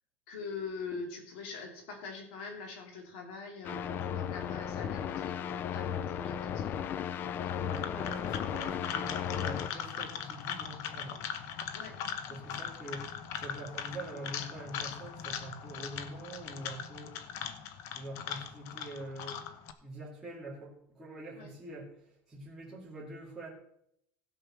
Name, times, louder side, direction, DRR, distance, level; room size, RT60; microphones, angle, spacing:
voice 1, 0.3-6.9 11.7-11.9 21.3-21.5, left 4 dB, 75° left, 2 dB, 2.9 m, -43 dB
sound 1, 3.6-9.7, left 9 dB, 35° left, 0.5 m, -35 dB
sound 2, 7.3-19.7, left 8 dB, 50° left, 1.0 m, -40 dB
voice 2, 7.6-11.2 12.3-13.1 13.4-17.2 17.9-19.4 19.8-21.9 22.3-23.5, right 1 dB, ahead, -8 dB, 2.6 m, -45 dB
16.0 x 5.4 x 6.1 m, 0.74 s
supercardioid pair, 145°, 6 cm